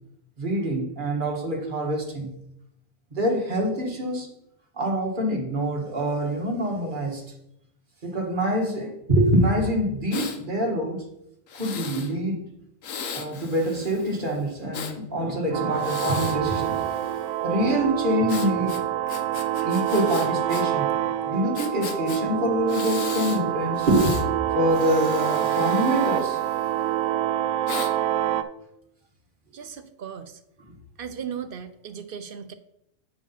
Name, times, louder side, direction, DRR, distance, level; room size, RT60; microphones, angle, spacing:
voice 1, 0.4-2.3 3.2-4.3 4.8-7.2 8.0-11.1 11.6-12.4 13.1-17.2 17.4-18.8 19.6-20.9 21.3-24.2 24.5-26.4, equal, 40° right, 1 dB, 1.7 m, -25 dB
Breathing, 10.1-10.4 11.5-12.1 12.8-15.0 15.7-17.4 18.3-20.6 20.9-21.0 21.6-22.2 22.7-23.4 23.8-24.3 24.7-26.9 27.7-27.9, left 6 dB, 75° left, 1.3 m, -37 dB
sound 1, 15.5-28.4, right 12 dB, 85° right, 1.0 m, -26 dB
voice 2, 29.5-30.4 31.0-32.5, right 7 dB, 55° right, 10 dB, 0.7 m, -37 dB
8.5 x 4.9 x 5.6 m, 0.80 s
omnidirectional pair, 1.4 m